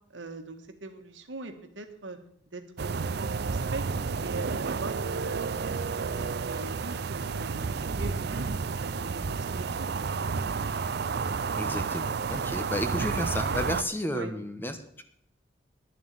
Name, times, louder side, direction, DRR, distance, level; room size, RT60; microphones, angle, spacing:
voice 1, 0.1-2.2 2.5-3.9 4.2-6.2 6.5-8.5 8.8-9.9 14.1-14.3, right 3 dB, 85° right, 6 dB, 1.7 m, -41 dB
sound 1, 2.8-13.8, right 5 dB, 60° right, 0.5 m, -31 dB
voice 2, 11.5-15.0, left 1 dB, 10° left, 8 dB, 1.1 m, -32 dB
11.0 x 7.1 x 8.8 m, 0.69 s
head